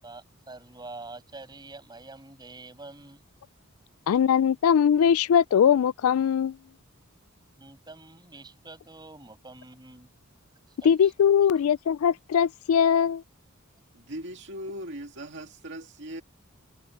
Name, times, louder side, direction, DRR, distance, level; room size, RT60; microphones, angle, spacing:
voice 1, 0.0-3.2 7.6-10.1 10.8-11.1, right 2 dB, 20° right, 7.3 m, -46 dB
voice 2, 4.1-6.6 10.8-13.2, left 8 dB, 80° left, 0.3 m, -21 dB
voice 3, 13.9-16.2, equal, 55° right, 2.3 m, -39 dB
head